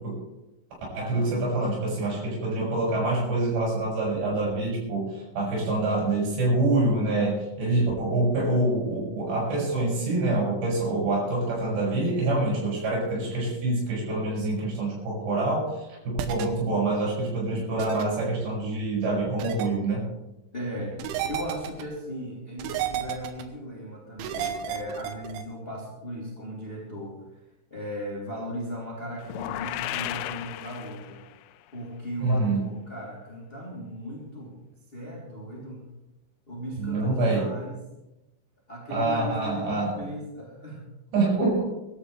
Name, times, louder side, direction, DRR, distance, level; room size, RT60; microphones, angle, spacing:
voice 1, 0.9-20.0 32.2-32.6 36.8-37.4 38.9-39.9 41.1-41.7, right 2 dB, 55° right, -5 dB, 8.5 m, -26 dB
sound 1, 16.2-16.5 17.8-18.0 19.4-19.7 21.0-21.8 22.6-23.4 24.2-25.4, right 10 dB, 80° right, 3.4 m, -31 dB
voice 2, 20.5-27.2 27.7-31.2 31.7-34.6 34.9-35.9 36.5-37.8 38.7-40.9, equal, 15° left, -4 dB, 2.2 m, -37 dB
sound 2, 29.2-31.4, left 14 dB, 90° left, 3.2 m, -34 dB
23.5 x 12.5 x 3.3 m, 0.97 s
omnidirectional pair, 5.6 m